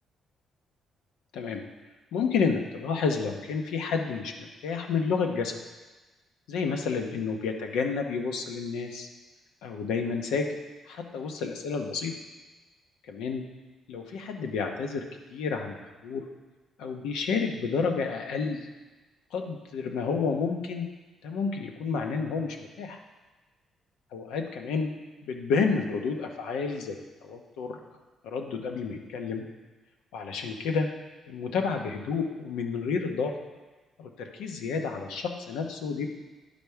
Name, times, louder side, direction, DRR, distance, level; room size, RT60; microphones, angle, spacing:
voice 1, 2.1-5.6 6.5-9.1 9.6-10.5 10.9-12.1 13.1-13.4 13.9-15.0 15.3-16.3 16.8-18.7 19.3-20.9 21.2-23.0 24.1-24.9 25.2-27.0 27.2-27.8 28.2-29.4 30.1-30.9 31.3-33.3 34.0-36.1, left 5 dB, 90° left, 4 dB, 0.9 m, -30 dB
10.0 x 5.2 x 4.6 m, 1.2 s
cardioid pair, 90°, 0 cm